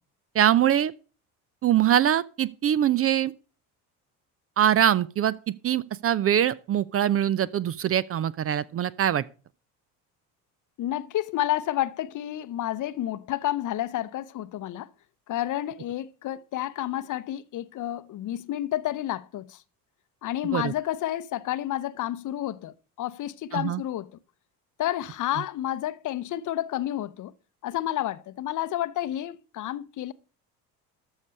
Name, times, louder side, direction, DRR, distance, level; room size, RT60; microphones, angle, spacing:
voice 1, 0.3-0.9 1.6-3.3 4.6-9.2 20.5-20.7 23.5-23.8, right 10 dB, 30° right, 0.5 m, -23 dB
voice 2, 10.8-14.9 15.3-19.6 20.2-24.1 24.8-27.3 27.6-30.1, left 13 dB, 40° left, 0.8 m, -30 dB
13.5 x 6.5 x 5.4 m
figure-of-eight pair, 60°, 46 cm